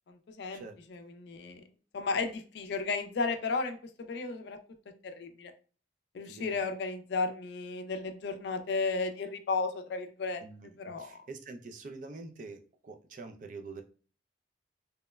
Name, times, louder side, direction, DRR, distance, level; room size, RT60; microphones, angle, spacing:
voice 1, 0.1-0.6 0.9-1.6 1.9-4.6 5.0-5.5 6.1-10.4 10.8-11.1, left 4 dB, 60° left, 7 dB, 0.3 m, -34 dB
voice 2, 6.2-6.7 10.4-10.7 11.0-13.8, right 3 dB, 40° right, 5 dB, 0.3 m, -45 dB
2.9 x 2.0 x 2.2 m, 0.39 s
head